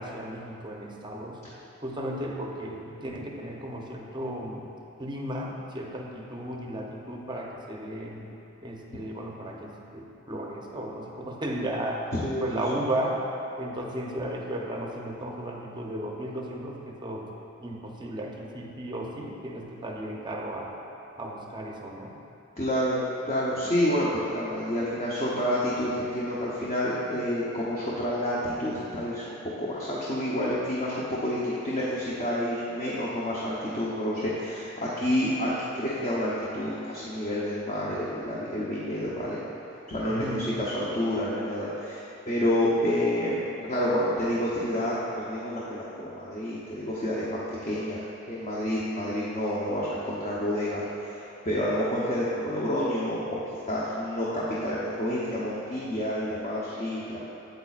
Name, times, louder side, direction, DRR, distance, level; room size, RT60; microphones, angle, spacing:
voice 1, 0.0-1.4 1.8-4.7 5.0-8.3 8.6-12.1 12.4-13.2 13.6-17.3 17.6-20.8 21.1-22.2 40.1-40.6, right 1 dB, 20° right, -1 dB, 0.6 m, -34 dB
voice 2, 12.1-12.5 22.6-39.4 39.9-48.0 48.3-51.1 51.4-53.4 53.7-57.2, left 1 dB, 35° left, -7 dB, 0.8 m, -29 dB
8.3 x 8.1 x 2.4 m, 2.8 s
head